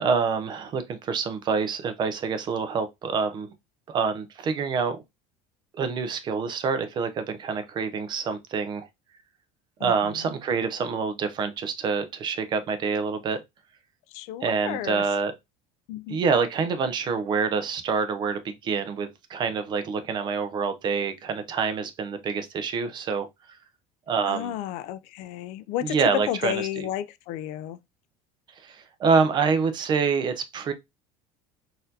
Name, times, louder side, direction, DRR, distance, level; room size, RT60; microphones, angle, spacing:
voice 1, 0.0-3.5 3.9-5.0 5.8-8.9 9.8-13.4 14.4-15.3 16.1-23.3 24.1-24.5 25.8-26.9 28.6-30.7, right 5 dB, 35° right, 0.5 m, -26 dB
voice 2, 9.8-10.1 14.1-15.0 15.9-16.2 24.2-26.0 26.3-27.8, left 12 dB, 65° left, 0.4 m, -32 dB
4.0 x 2.6 x 2.7 m
cardioid pair, 135°, 13 cm